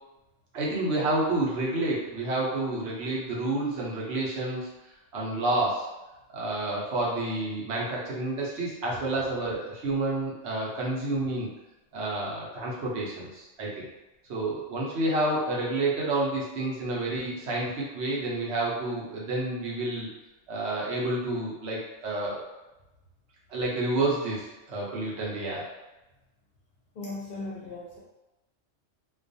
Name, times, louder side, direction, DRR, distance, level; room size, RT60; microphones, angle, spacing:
voice 1, 0.5-4.7 5.1-5.9 6.3-11.5 11.9-13.9 14.3-20.1 20.5-22.4 23.5-25.7, right 2 dB, 70° right, -4 dB, 0.9 m, -29 dB
voice 2, 26.9-28.0, left 2 dB, 65° left, -3 dB, 0.7 m, -37 dB
2.3 x 2.3 x 2.6 m, 1.0 s
omnidirectional pair, 1.2 m